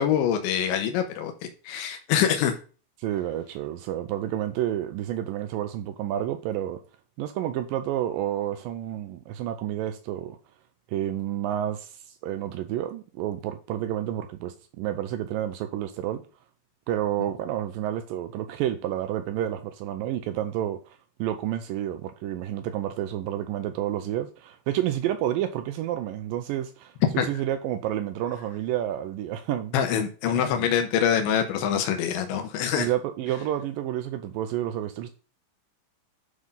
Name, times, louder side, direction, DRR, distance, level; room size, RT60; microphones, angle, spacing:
voice 1, 0.0-1.3 1.7-2.5 27.2-27.3 29.7-32.9, left 9 dB, 80° left, 2.7 m, -24 dB
voice 2, 3.0-6.8 7.2-10.4 10.9-11.9 12.2-16.2 16.9-29.7 30.3-30.7 32.8-35.1, right 12 dB, 80° right, 2.2 m, -30 dB
9.6 x 3.8 x 5.4 m
omnidirectional pair, 4.2 m